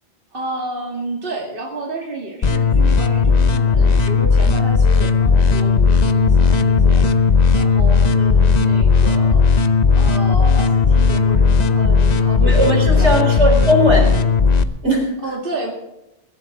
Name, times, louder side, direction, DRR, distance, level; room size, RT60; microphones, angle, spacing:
voice 1, 0.3-7.1 7.6-9.5 10.0-12.6 13.0-13.7 15.2-15.7, right 1 dB, 55° right, -1 dB, 2.4 m, -30 dB
sound 1, 2.4-14.6, left 5 dB, 40° left, 0.8 m, -15 dB
voice 2, 12.4-14.1 14.8-15.1, equal, 85° right, 2 dB, 4.4 m, -17 dB
21.5 x 11.0 x 3.9 m, 0.95 s
omnidirectional pair, 1.1 m